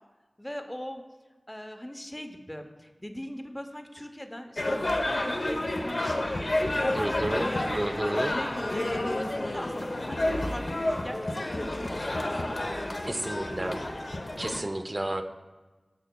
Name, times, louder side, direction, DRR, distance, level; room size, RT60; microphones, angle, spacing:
voice 1, 0.4-1.0 1.5-7.7 8.1-13.9, equal, 15° left, 6 dB, 0.8 m, -41 dB
sound 1, 4.6-14.6, left 1 dB, 65° left, 0.8 m, -30 dB
voice 2, 6.9-8.4 13.1-13.8 14.4-15.2, right 1 dB, 35° right, 7 dB, 0.6 m, -31 dB
14.5 x 5.5 x 2.3 m, 1.2 s
wide cardioid pair, 45°, 0 cm